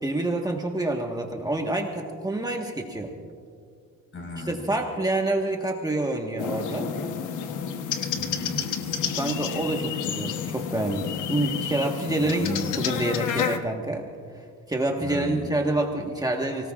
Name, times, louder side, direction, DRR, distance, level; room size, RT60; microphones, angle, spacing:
voice 1, 0.0-3.1 4.4-6.9 9.1-12.5 12.7-14.0 14.3-16.7, right 2 dB, 15° right, 1 dB, 1.5 m, -27 dB
voice 2, 4.1-4.6 8.0-9.4 12.1-12.7 15.0-15.5, left 2 dB, 45° left, 2 dB, 5.0 m, -36 dB
sound 1, 6.4-13.6, left 7 dB, 80° left, 1.2 m, -30 dB
29.0 x 18.5 x 2.5 m, 2.2 s
cardioid pair, 90°, 30 cm